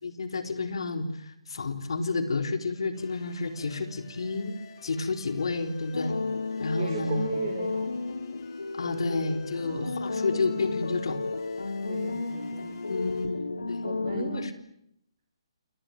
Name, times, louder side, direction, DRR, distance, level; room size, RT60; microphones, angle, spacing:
voice 1, 0.0-6.2 6.6-7.4 8.7-11.2 12.9-14.5, left 3 dB, 65° left, 8 dB, 3.8 m, -31 dB
sound 1, 2.9-13.3, left 4 dB, 45° left, 6.1 m, -52 dB
sound 2, 5.9-14.5, left 3 dB, 85° left, 1.5 m, -33 dB
voice 2, 6.8-8.0 9.5-10.6 11.9-12.8 13.8-14.5, right 7 dB, 40° right, 6 dB, 3.5 m, -37 dB
28.5 x 19.0 x 9.1 m, 0.75 s
figure-of-eight pair, 140°, 3 cm